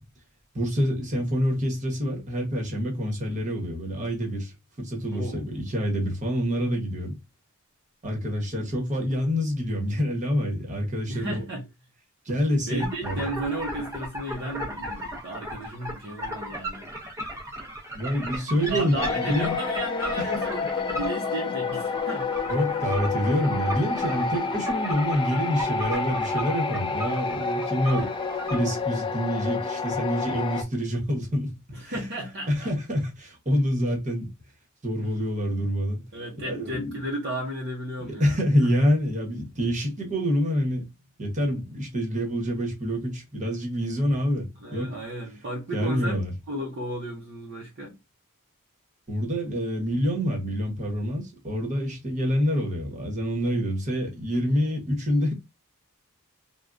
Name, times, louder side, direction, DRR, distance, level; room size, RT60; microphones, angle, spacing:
voice 1, 0.5-7.2 8.0-11.4 12.2-13.2 17.9-19.6 20.2-20.3 22.5-28.1 28.5-31.5 32.5-34.3 34.8-36.0 36.4-36.9 38.0-40.9 41.2-44.9 45.7-46.3 49.1-55.3, equal, 35° right, 1.1 m, -27 dB
voice 2, 5.1-5.5 11.1-11.7 12.7-16.9 18.7-22.3 31.7-32.7 35.0-35.1 36.1-38.4 43.4-43.5 44.6-48.0, right 1 dB, 50° right, 0.7 m, -34 dB
sound 1, 12.8-28.6, equal, 15° right, 0.7 m, -37 dB
sound 2, 19.0-30.6, left 4 dB, 20° left, 0.3 m, -29 dB
3.5 x 2.2 x 2.5 m
head